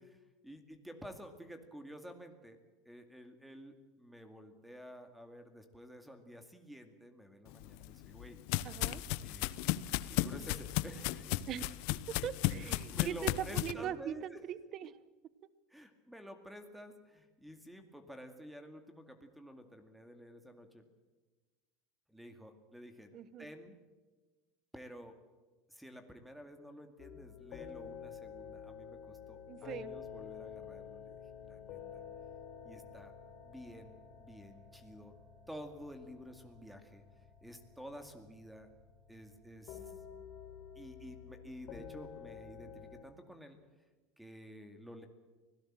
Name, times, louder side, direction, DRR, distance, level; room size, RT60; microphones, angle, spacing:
voice 1, 0.0-2.6 2.9-8.4 9.2-9.5 10.1-11.5 12.6-14.4 15.7-20.9 22.1-23.1 23.4-23.8 24.7-25.2 25.7-31.8 32.6-33.1 33.4-35.2 35.5-37.0 37.4-38.7 39.1-39.9 40.8-43.6 44.2-45.1, equal, 5° right, 7 dB, 2.2 m, -51 dB
sound 1, 7.6-13.7, left 16 dB, 65° left, 0.9 m, -35 dB
voice 2, 8.6-9.0 11.5-15.0 23.1-23.5 29.5-29.9, right 10 dB, 40° right, 17 dB, 1.0 m, -41 dB
sound 2, 27.0-43.0, left 8 dB, 50° left, 4.4 m, -50 dB
25.0 x 17.5 x 7.5 m, 1.2 s
supercardioid pair, 140°, 0 cm